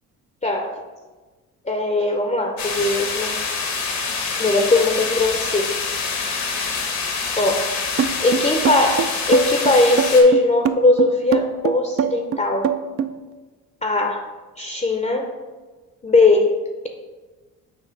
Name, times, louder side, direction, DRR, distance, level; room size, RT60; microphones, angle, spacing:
voice 1, 0.4-0.8 1.7-3.4 4.4-5.8 7.4-7.8 8.2-12.7 13.8-14.3 14.6-15.4 16.0-16.9, left 2 dB, 20° left, 3 dB, 0.6 m, -19 dB
sound 1, 2.6-10.2, left 5 dB, 75° left, 1.2 m, -26 dB
sound 2, 8.0-13.1, right 8 dB, 40° right, 0.4 m, -22 dB
6.9 x 2.8 x 5.1 m, 1.3 s
cardioid pair, 80°, 36 cm